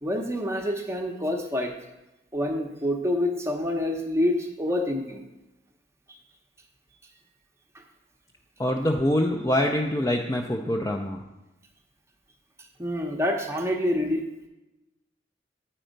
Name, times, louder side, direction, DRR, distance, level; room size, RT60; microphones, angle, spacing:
voice 1, 0.0-1.7 2.3-5.2 12.8-14.2, left 1 dB, 15° right, 3 dB, 0.7 m, -27 dB
voice 2, 8.6-11.2, left 1 dB, 20° left, 1 dB, 0.4 m, -25 dB
8.9 x 4.4 x 5.1 m, 0.98 s
head